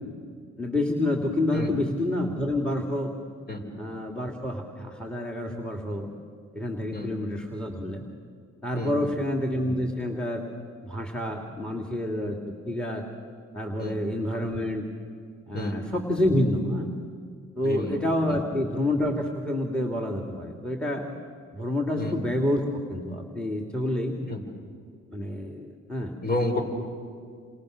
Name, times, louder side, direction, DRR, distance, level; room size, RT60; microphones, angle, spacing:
voice 1, 0.6-3.1 3.7-6.1 6.5-8.0 8.6-10.4 10.8-13.0 13.5-14.8 15.5-16.9 17.6-21.1 21.5-22.6 22.9-24.1 25.1-26.1, left 1 dB, 5° left, 2 dB, 2.8 m, -28 dB
voice 2, 8.7-9.1 13.8-14.0 15.5-15.8 17.6-18.0 18.3-18.4 22.0-22.2 24.3-24.4 26.2-26.6, left 2 dB, 30° left, 3 dB, 5.1 m, -30 dB
28.5 x 27.0 x 6.7 m, 2.2 s
cardioid pair, 90°, 30 cm